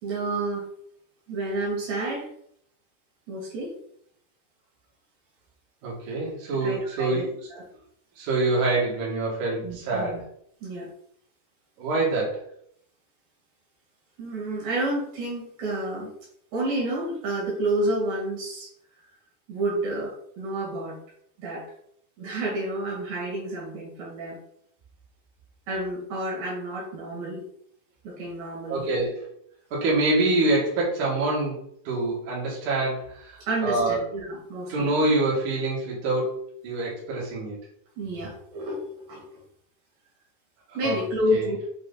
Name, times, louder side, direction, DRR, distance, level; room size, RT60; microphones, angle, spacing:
voice 1, 0.0-0.7 1.3-2.3 3.3-3.8 6.6-7.6 9.6-10.2 10.6-10.9 14.2-16.1 16.5-18.7 19.5-21.0 21.4-21.6 22.2-24.4 25.7-27.5 28.0-28.9 33.5-34.9 38.0-39.4 40.7-41.6, right 1 dB, 75° right, -3 dB, 3.8 m, -30 dB
voice 2, 5.8-7.3 8.2-10.2 11.8-12.4 28.7-29.3 29.7-31.6 31.8-34.0 34.7-37.6 40.8-41.0 41.3-41.5, right 2 dB, 55° right, -5 dB, 3.1 m, -26 dB
7.6 x 3.1 x 4.0 m, 0.67 s
omnidirectional pair, 4.3 m